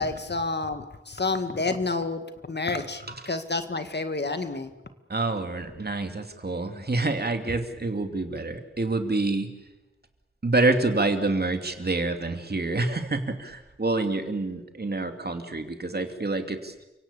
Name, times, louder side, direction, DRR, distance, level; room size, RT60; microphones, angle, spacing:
voice 1, 0.0-4.7, left 3 dB, 55° left, 9 dB, 2.0 m, -29 dB
voice 2, 5.1-9.5 10.4-16.8, right 2 dB, 50° right, 6 dB, 2.7 m, -27 dB
30.0 x 17.5 x 8.4 m, 1.0 s
wide cardioid pair, 55°, 21 cm